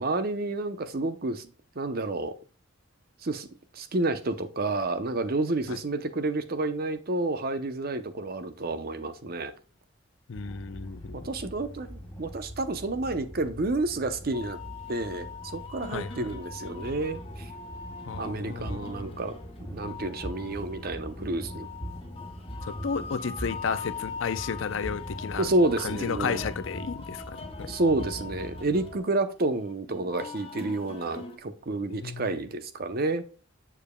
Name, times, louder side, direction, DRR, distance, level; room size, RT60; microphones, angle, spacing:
voice 1, 0.0-1.5 1.8-2.4 3.2-3.5 3.7-9.5 11.1-14.6 14.9-17.5 18.2-19.4 19.7-21.7 25.4-26.4 27.7-33.2, right 2 dB, 50° right, 0.7 m, -30 dB
voice 2, 10.3-11.3 15.9-16.3 18.1-19.1 22.7-25.5 25.8-27.7 31.9-32.3, left 6 dB, 70° left, 0.5 m, -33 dB
sound 1, 10.4-29.0, equal, 10° left, 2.5 m, -42 dB
sound 2, 14.3-31.4, left 5 dB, 30° left, 1.2 m, -43 dB
7.2 x 6.9 x 2.2 m
head